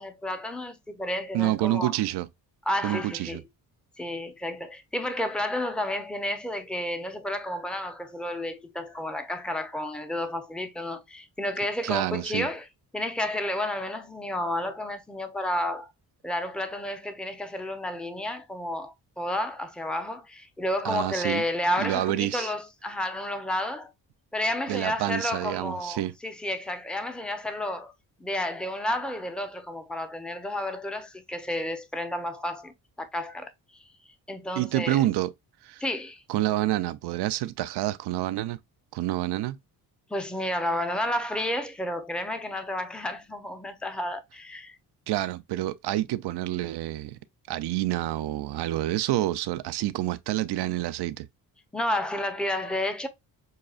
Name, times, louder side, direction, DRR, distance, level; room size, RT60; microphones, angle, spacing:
voice 1, 0.0-1.9 2.7-3.4 4.0-12.7 12.9-15.9 16.2-23.9 24.3-27.9 28.2-33.5 34.3-35.0 35.8-36.2 40.1-44.8 51.7-53.1, left 1 dB, ahead, 0.7 m, -31 dB
voice 2, 1.3-2.3 2.8-3.4 11.8-12.5 20.8-21.4 21.8-22.5 24.7-26.1 34.6-35.3 35.6-35.8 36.3-38.6 38.9-39.6 45.1-47.2 47.5-51.3, right 14 dB, 75° right, 0.6 m, -28 dB
6.4 x 2.3 x 2.4 m
cardioid pair, 75°, 40 cm